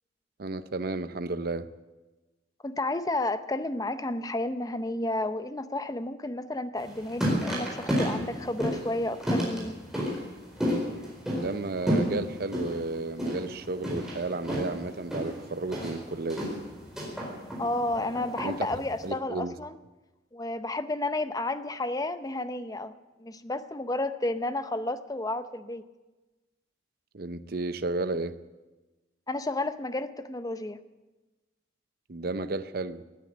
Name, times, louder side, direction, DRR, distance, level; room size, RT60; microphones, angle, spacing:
voice 1, 0.4-1.7 11.3-16.5 18.4-18.7 19.0-19.5 27.1-28.3 32.1-33.0, right 3 dB, 50° right, 0.7 m, -32 dB
voice 2, 2.6-9.8 17.6-19.8 20.3-22.9 23.2-25.8 29.3-30.8, left 2 dB, 20° left, 0.6 m, -31 dB
sound 1, 6.8-19.1, equal, 5° right, 4.4 m, -32 dB
18.5 x 9.6 x 8.1 m
head